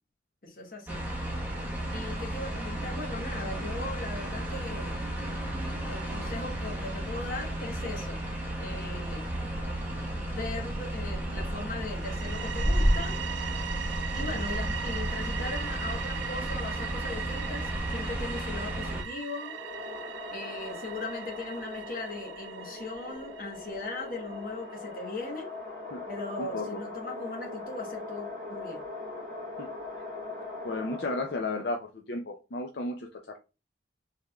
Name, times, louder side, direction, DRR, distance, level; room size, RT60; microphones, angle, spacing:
voice 1, 0.4-1.0 1.9-5.0 5.8-8.2 8.6-9.3 10.1-13.2 14.1-19.6 20.3-25.5 26.1-28.8, left 2 dB, 50° left, 1.1 m, -39 dB
sound 1, 0.9-19.0, right 1 dB, 10° right, 1.1 m, -32 dB
sound 2, 11.9-24.6, right 9 dB, 90° right, 0.4 m, -40 dB
sound 3, 19.3-31.8, left 3 dB, 45° right, 2.4 m, -41 dB
voice 2, 26.4-26.8 29.6-29.7 30.6-33.1, left 2 dB, 70° left, 0.6 m, -33 dB
5.5 x 3.5 x 2.3 m
head